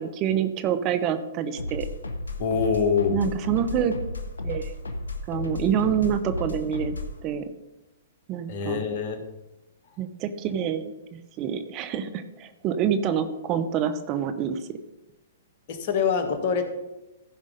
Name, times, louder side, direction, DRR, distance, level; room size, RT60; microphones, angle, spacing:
voice 1, 0.0-1.9 3.1-3.9 4.4-4.7 5.3-6.9 7.2-7.5 8.3-8.8 10.0-14.8, right 8 dB, 35° right, 10 dB, 0.9 m, -27 dB
sound 1, 1.6-7.2, left 2 dB, 80° left, 1.3 m, -33 dB
voice 2, 2.4-3.2 8.5-9.2 15.7-16.7, left 6 dB, 50° left, 6 dB, 1.6 m, -25 dB
14.5 x 5.2 x 5.2 m, 0.98 s
hypercardioid pair, 115°, 0 cm